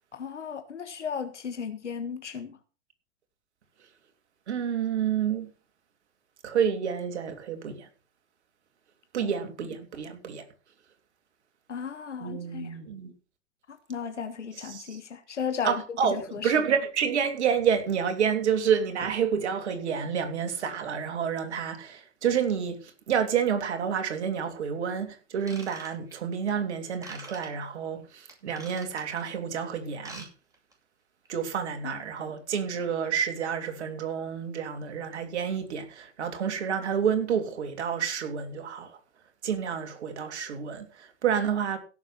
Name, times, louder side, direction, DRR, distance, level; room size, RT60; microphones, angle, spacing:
voice 1, 0.1-2.6 9.2-9.3 11.7-12.8 13.7-15.8 16.1-16.5 31.8-31.9, left 7 dB, 80° left, 1.6 m, -35 dB
voice 2, 4.5-5.5 6.4-7.9 9.1-10.4 12.2-13.1 14.5-15.0 15.6-30.3 31.3-39.0 39.4-41.8, right 7 dB, 70° right, 3.1 m, -29 dB
Ratchet pawl / Tools, 25.4-26.3 27.0-27.5 28.3-29.2 29.9-30.3 30.5-30.7 31.2-31.3, right 2 dB, 10° right, 6.7 m, -45 dB
16.5 x 7.3 x 6.0 m
figure-of-eight pair, 85°, 35 cm